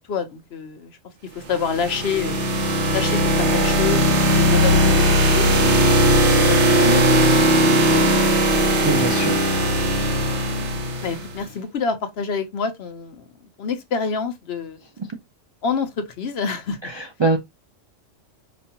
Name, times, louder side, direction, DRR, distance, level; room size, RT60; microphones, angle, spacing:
voice 1, 0.1-1.0 1.3-2.4 2.9-5.9 6.5-7.2 7.4-8.0 8.3-8.4 11.0-13.3 13.6-14.8 15.6-16.8, left 6 dB, 60° left, 0.8 m, -27 dB
sound 1, 1.5-11.3, equal, 65° right, 1.2 m, -18 dB
voice 2, 8.8-9.4 15.0-15.1 16.8-17.4, right 3 dB, 40° right, 0.4 m, -23 dB
5.1 x 2.3 x 2.8 m
omnidirectional pair, 1.3 m